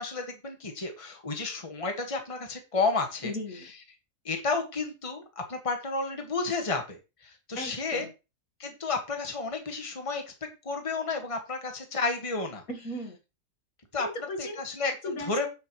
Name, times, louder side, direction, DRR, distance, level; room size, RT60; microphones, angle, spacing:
voice 1, 0.0-3.3 4.3-8.1 8.6-12.6 13.9-14.1 14.4-15.5, left 3 dB, 20° left, 4 dB, 1.7 m, -31 dB
voice 2, 3.2-3.7 7.6-8.1 12.7-13.2 14.0-14.6 15.0-15.5, left 1 dB, 60° left, 4 dB, 2.2 m, -36 dB
9.8 x 7.9 x 3.2 m, 0.28 s
omnidirectional pair, 1.7 m